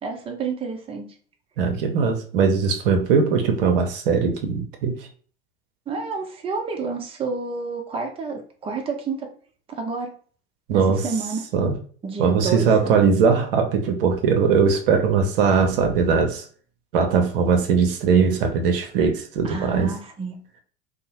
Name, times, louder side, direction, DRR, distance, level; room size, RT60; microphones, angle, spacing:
voice 1, 0.0-1.1 5.9-9.3 9.7-10.1 10.7-11.4 12.0-13.0 19.4-20.4, right 4 dB, 20° right, 2 dB, 0.6 m, -30 dB
voice 2, 1.6-5.1 10.7-11.0 11.5-11.8 12.2-16.5 16.9-19.9, right 5 dB, 65° right, 4 dB, 0.6 m, -20 dB
2.6 x 2.0 x 2.8 m, 0.43 s
figure-of-eight pair, 75°, 30 cm